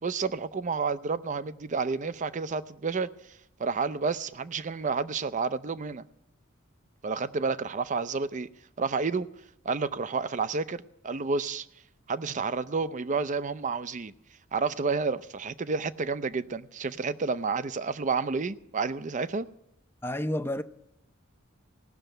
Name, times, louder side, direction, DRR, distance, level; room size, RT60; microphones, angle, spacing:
voice 1, 0.0-3.1 3.6-6.0 7.0-8.5 8.8-9.3 9.6-11.7 12.1-14.1 14.5-19.5, right 4 dB, 40° right, 0.5 m, -30 dB
voice 2, 20.0-20.6, left 1 dB, 10° left, 0.5 m, -30 dB
17.5 x 6.6 x 9.0 m
head